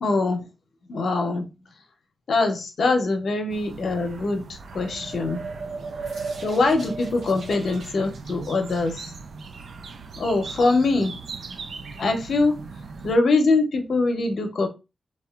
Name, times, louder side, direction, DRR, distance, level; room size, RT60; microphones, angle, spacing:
voice 1, 0.0-0.5 0.9-1.5 2.3-5.5 6.4-9.1 10.2-11.2 11.5-11.6 12.0-12.7 13.0-14.7, left 3 dB, 75° left, 0.6 m, -23 dB
sound 1, 3.5-13.2, right 4 dB, 75° right, 0.3 m, -40 dB
sound 2, 4.6-7.9, right 3 dB, 90° right, 0.9 m, -36 dB
2.8 x 2.2 x 2.3 m
cardioid pair, 80°, 0 cm